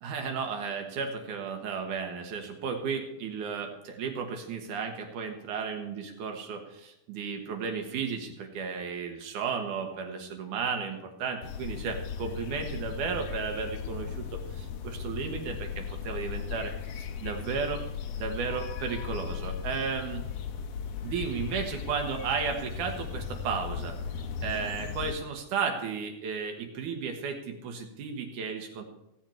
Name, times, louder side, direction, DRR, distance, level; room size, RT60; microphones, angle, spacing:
voice 1, 0.0-17.8 18.2-20.2 21.0-24.0 24.4-28.8, right 5 dB, 85° right, 4 dB, 3.0 m, -34 dB
sound 1, 11.4-25.1, left 7 dB, 65° left, 1.9 m, -37 dB
16.5 x 8.1 x 4.5 m, 0.87 s
omnidirectional pair, 3.5 m